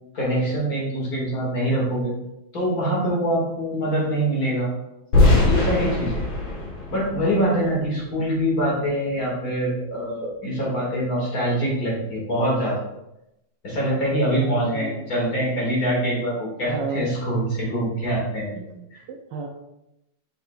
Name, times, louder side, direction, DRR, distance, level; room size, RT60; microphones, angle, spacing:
voice 1, 0.1-2.1 2.5-4.7 5.2-6.2 6.9-12.8 13.6-18.5 18.9-19.0, right 1 dB, 45° left, -5 dB, 2.7 m, -24 dB
sound 1, 5.1-8.1, left 2 dB, 70° left, 2.4 m, -21 dB
voice 2, 14.4-14.9 16.6-17.1 18.6-19.5, right 4 dB, 70° right, 2 dB, 1.2 m, -33 dB
6.9 x 6.8 x 2.5 m, 0.86 s
omnidirectional pair, 2.3 m